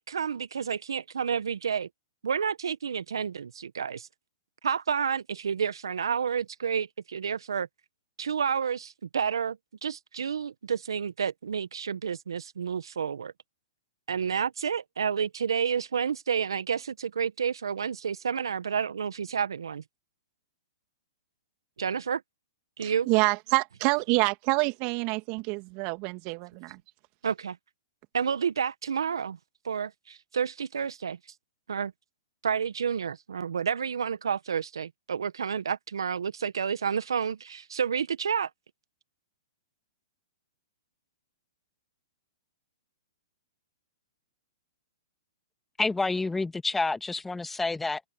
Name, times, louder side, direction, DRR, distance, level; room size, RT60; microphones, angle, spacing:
voice 1, 0.0-1.9 2.2-4.1 4.6-7.7 8.2-13.3 14.1-19.8 21.8-22.2 22.8-23.1 27.2-27.6 28.1-29.4 29.6-31.2 31.7-31.9 32.4-38.5, right 7 dB, 75° right, 1.3 m, -30 dB
voice 2, 22.8-26.8, right 29 dB, 40° right, 2.5 m, -27 dB
voice 3, 45.8-48.0, left 3 dB, 5° left, 1.9 m, -28 dB
open air
hypercardioid pair, 120°, 2 cm